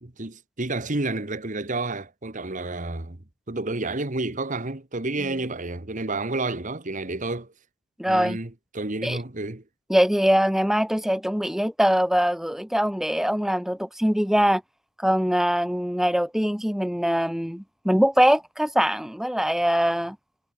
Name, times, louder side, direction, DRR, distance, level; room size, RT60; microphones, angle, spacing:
voice 1, 0.0-3.2 3.5-7.5 8.1-9.6, right 2 dB, 35° right, 1.5 m, -30 dB
voice 2, 8.0-8.4 9.0-9.2 9.9-14.6 15.0-20.2, equal, ahead, 0.6 m, -22 dB
head